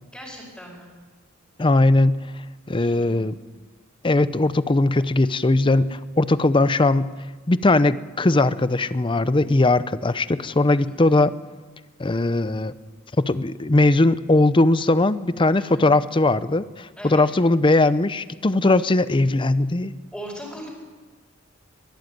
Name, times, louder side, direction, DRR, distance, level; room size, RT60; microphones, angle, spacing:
voice 1, 0.1-0.9 2.7-3.2 10.8-11.2 15.6-15.8 17.0-17.3 20.1-20.7, equal, 5° left, -4 dB, 5.1 m, -39 dB
voice 2, 1.6-2.2 2.7-3.3 4.0-7.1 7.5-11.4 12.0-12.7 13.2-19.9, left 2 dB, 25° left, 15 dB, 0.6 m, -19 dB
21.0 x 14.0 x 9.4 m, 1.3 s
head